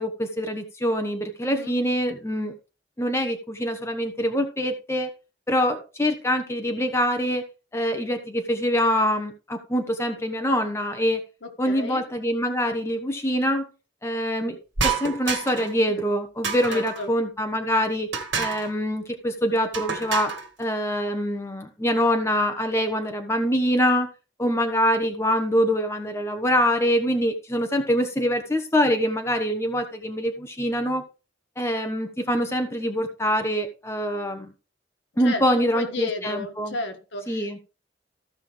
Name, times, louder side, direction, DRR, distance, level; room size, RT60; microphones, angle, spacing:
voice 1, 0.0-2.5 3.0-5.1 5.5-7.4 7.7-11.2 11.6-13.7 14.0-18.1 18.4-20.3 20.6-24.1 24.4-31.0 31.6-34.5 35.2-36.8 37.3-37.6, equal, 15° left, 6 dB, 1.1 m, -24 dB
voice 2, 1.4-1.7 11.4-12.0 15.9-16.0 16.7-17.1 35.2-37.6, left 2 dB, 80° left, 5 dB, 1.7 m, -33 dB
sound 1, 14.8-15.7 16.4-17.1 18.1-18.7 19.7-20.5, right 5 dB, 75° right, 1.8 m, -28 dB
15.0 x 5.5 x 3.4 m, 0.32 s
head